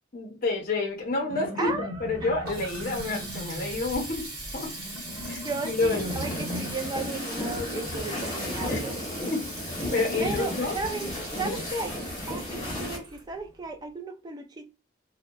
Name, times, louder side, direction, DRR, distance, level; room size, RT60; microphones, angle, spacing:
voice 1, 0.1-1.7 2.0-4.7 5.3-6.2 8.7-8.8 9.3-9.4 9.9-10.8 11.4-11.6, left 3 dB, 45° left, 0.6 m, -29 dB
sound 1, 1.1-9.0, equal, 75° right, 1.0 m, -39 dB
voice 2, 1.6-2.3 5.4-9.0 10.2-11.1 11.4-12.0 12.3-14.7, right 3 dB, 20° right, 0.4 m, -35 dB
Water tap faucet, 2.0-13.7, right 2 dB, 50° right, 1.1 m, -41 dB
sound 2, 5.8-13.0, left 1 dB, 20° left, 0.9 m, -34 dB
2.7 x 2.1 x 2.2 m
head